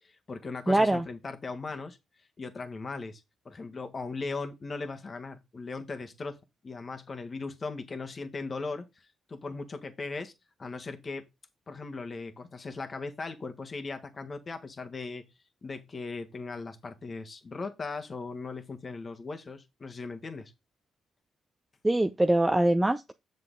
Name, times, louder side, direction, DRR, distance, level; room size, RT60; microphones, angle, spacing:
voice 1, 0.0-2.0 2.4-6.4 6.6-10.3 10.6-11.2 11.7-15.3 15.6-20.5, left 3 dB, 40° left, 1.6 m, -38 dB
voice 2, 0.7-1.0 21.8-23.1, right 1 dB, 15° right, 0.7 m, -23 dB
8.2 x 6.7 x 3.8 m
hypercardioid pair, 45°, 0 cm